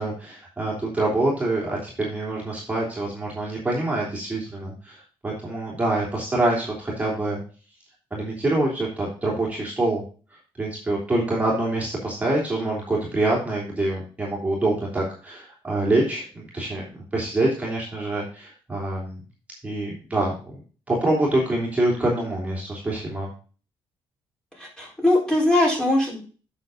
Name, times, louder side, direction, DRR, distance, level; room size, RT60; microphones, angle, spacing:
voice 1, 0.0-7.4 8.1-10.0 10.6-19.2 19.6-20.3 20.9-23.3, right 2 dB, 15° right, -4 dB, 3.0 m, -25 dB
voice 2, 24.6-26.2, left 1 dB, 10° left, -3 dB, 4.1 m, -21 dB
8.2 x 6.7 x 3.8 m, 0.37 s
cardioid pair, 140°, 9 cm